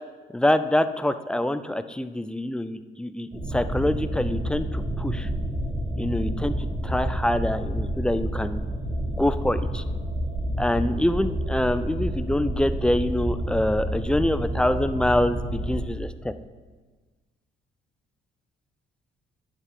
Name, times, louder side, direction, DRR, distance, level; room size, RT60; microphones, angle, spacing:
voice 1, 0.3-5.3 6.0-8.6 9.2-9.8 10.6-16.3, left 1 dB, 5° left, 12 dB, 0.4 m, -25 dB
sound 1, 3.3-15.8, right 1 dB, 25° right, 1.9 m, -29 dB
10.0 x 7.4 x 3.6 m, 1.4 s
cardioid pair, 90°, 20 cm